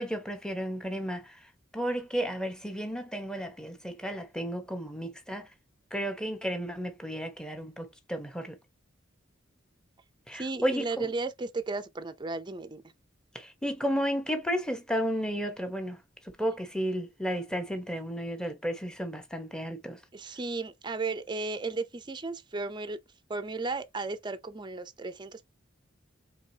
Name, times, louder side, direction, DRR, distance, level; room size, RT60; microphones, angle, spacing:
voice 1, 0.0-1.4 1.7-5.5 5.9-8.5 10.3-11.1 13.3-16.0 16.4-20.0, equal, 5° left, 0.9 m, -33 dB
voice 2, 10.3-12.8 20.1-23.0 23.3-25.5, right 3 dB, 25° right, 0.5 m, -34 dB
4.6 x 3.3 x 2.8 m
head